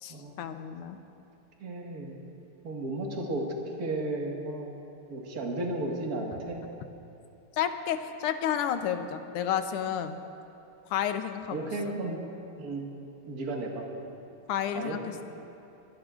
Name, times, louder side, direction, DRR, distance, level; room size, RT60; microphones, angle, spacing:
voice 1, 0.0-1.0 7.6-10.2 10.9-11.9 14.5-15.0, left 9 dB, 85° left, 8 dB, 1.7 m, -31 dB
voice 2, 1.6-2.2 2.6-3.5 3.8-4.8 5.1-6.6 11.5-12.2 12.6-12.9 13.3-14.1 14.7-15.0, right 2 dB, 45° right, -1 dB, 2.0 m, -34 dB
24.0 x 17.0 x 2.5 m, 2.8 s
omnidirectional pair, 2.4 m